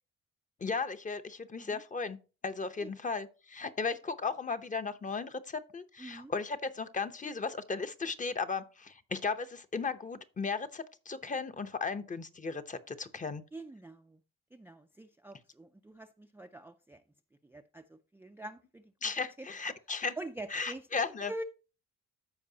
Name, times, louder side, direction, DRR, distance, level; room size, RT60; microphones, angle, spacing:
voice 1, 0.6-2.2 2.4-13.4 19.0-20.2 20.5-21.3, left 4 dB, 25° left, 0.8 m, -36 dB
voice 2, 6.0-6.3 13.5-14.2 14.5-17.0 17.4-18.9 19.4-19.5 20.2-21.4, right 1 dB, 5° right, 0.4 m, -45 dB
14.0 x 4.7 x 2.8 m
cardioid pair, 90°, 30 cm